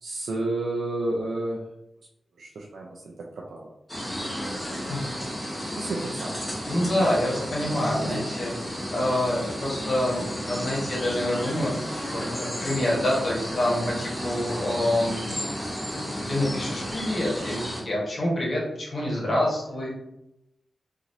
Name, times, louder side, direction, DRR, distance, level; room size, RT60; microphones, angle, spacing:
voice 1, 0.0-1.6 2.4-3.7 5.8-6.4 8.0-8.2, right 2 dB, 85° right, -2 dB, 0.4 m, -31 dB
sound 1, 3.9-17.8, equal, 10° left, 1.2 m, -32 dB
voice 2, 6.6-8.5 8.9-15.2 16.3-19.9, left 1 dB, 55° left, -4 dB, 1.2 m, -27 dB
3.0 x 2.5 x 2.7 m, 0.87 s
wide cardioid pair, 85°, 0 cm